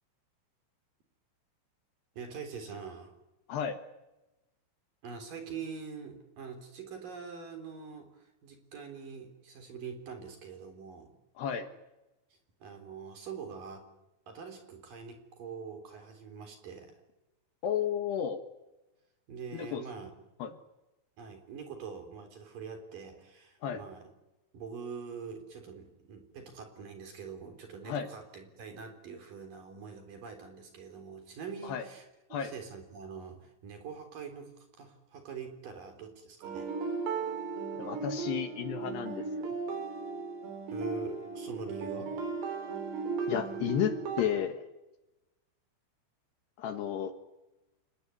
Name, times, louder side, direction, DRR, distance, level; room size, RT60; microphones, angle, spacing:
voice 1, 2.1-3.1 5.0-11.2 12.6-13.9 14.3-17.0 19.3-20.1 21.2-24.1 24.5-36.7 40.7-42.1, right 5 dB, 45° right, 5 dB, 4.9 m, -44 dB
voice 2, 11.4-11.7 17.6-18.4 19.6-19.8 20.4-20.5 23.6-23.8 27.9-28.1 31.6-31.8 32.3-32.5 37.8-39.3 43.3-44.6 46.6-47.1, left 9 dB, 70° left, 8 dB, 3.1 m, -32 dB
sound 1, 36.4-44.2, right 4 dB, 85° right, 6.2 m, -36 dB
29.0 x 19.0 x 9.8 m, 1.0 s
omnidirectional pair, 5.7 m